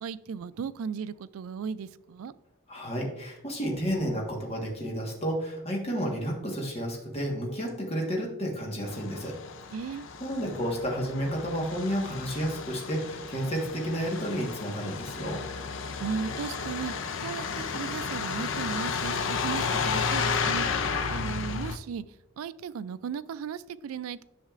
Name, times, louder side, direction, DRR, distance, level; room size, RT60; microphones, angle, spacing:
voice 1, 0.0-2.3 9.7-10.1 16.0-16.9 17.2-20.7 21.1-22.0 22.4-24.2, right 6 dB, 85° right, 16 dB, 0.3 m, -36 dB
voice 2, 2.7-9.3 10.2-15.4, equal, 30° left, -1 dB, 1.4 m, -31 dB
Truck, 8.9-21.8, left 5 dB, 65° left, 0.5 m, -32 dB
10.0 x 6.4 x 2.5 m, 0.89 s
head